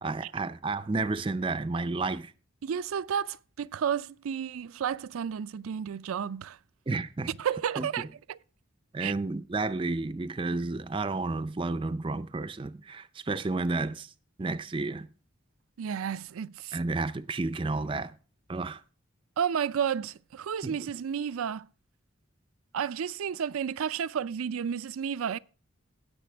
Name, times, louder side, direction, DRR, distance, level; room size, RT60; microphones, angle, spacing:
voice 1, 0.0-2.3 6.9-7.3 7.8-8.1 8.9-14.1 14.4-15.1 16.7-18.1 18.5-18.8 20.6-20.8, right 3 dB, 25° right, 0.4 m, -31 dB
voice 2, 2.6-6.6 7.4-8.4 9.0-9.1 15.8-16.8 19.4-21.7 22.7-25.4, right 8 dB, 90° right, 0.4 m, -32 dB
18.0 x 6.7 x 3.4 m
head